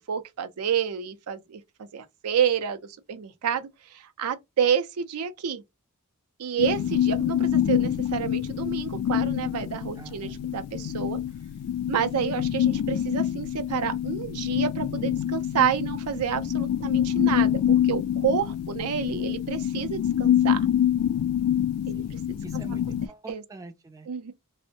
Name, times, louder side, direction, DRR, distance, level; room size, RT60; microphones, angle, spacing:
voice 1, 0.1-5.6 6.4-11.2 11.9-20.7 21.9-22.4 23.3-23.4 24.1-24.3, right 8 dB, 85° right, 0.5 m, -29 dB
sound 1, 6.6-23.1, left 10 dB, 80° left, 0.3 m, -26 dB
voice 2, 10.0-10.5 21.9-24.1, right 3 dB, 15° right, 0.3 m, -45 dB
2.5 x 2.0 x 2.6 m
head